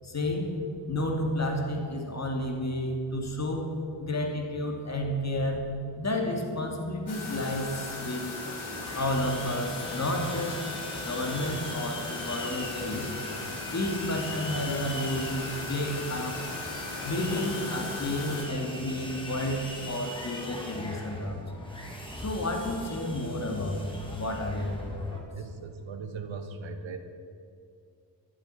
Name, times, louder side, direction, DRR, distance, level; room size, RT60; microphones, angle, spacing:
voice 1, 0.0-0.6 0.9-3.7 4.0-5.7 6.0-8.2 8.9-10.6 11.0-13.1 13.7-16.4 17.0-21.4 22.2-25.2, left 1 dB, 35° left, 2 dB, 2.6 m, -31 dB
sound 1, 7.1-18.5, left 3 dB, 55° left, 4.1 m, -38 dB
Sawing, 8.7-25.2, left 1 dB, 10° left, 2.9 m, -40 dB
voice 2, 25.3-27.0, right 4 dB, 90° right, 8 dB, 1.4 m, -39 dB
12.5 x 8.0 x 9.3 m, 2.4 s
cardioid pair, 75°, 45 cm